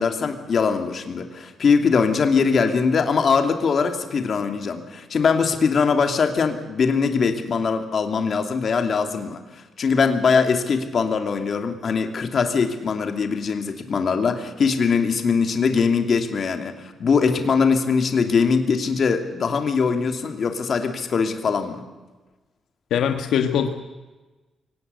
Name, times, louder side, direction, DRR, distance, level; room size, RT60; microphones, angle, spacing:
voice 1, 0.0-21.8, left 5 dB, 45° left, 6 dB, 2.6 m, -21 dB
voice 2, 22.9-23.7, left 8 dB, 85° left, 5 dB, 1.5 m, -21 dB
24.0 x 18.0 x 8.2 m, 1.2 s
cardioid pair, 155°, 0 cm